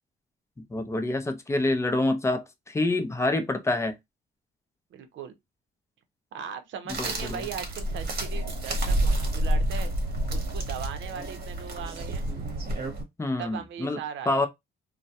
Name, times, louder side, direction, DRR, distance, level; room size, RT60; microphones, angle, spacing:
voice 1, 0.7-4.0 7.0-7.4 13.2-14.5, left 2 dB, 15° left, 0.5 m, -27 dB
voice 2, 4.9-5.3 6.3-9.9 10.3-12.3 13.4-14.4, right 8 dB, 70° right, 0.6 m, -38 dB
sound 1, 6.9-13.0, right 1 dB, 50° right, 0.9 m, -29 dB
2.2 x 2.1 x 2.7 m
cardioid pair, 90°, 20 cm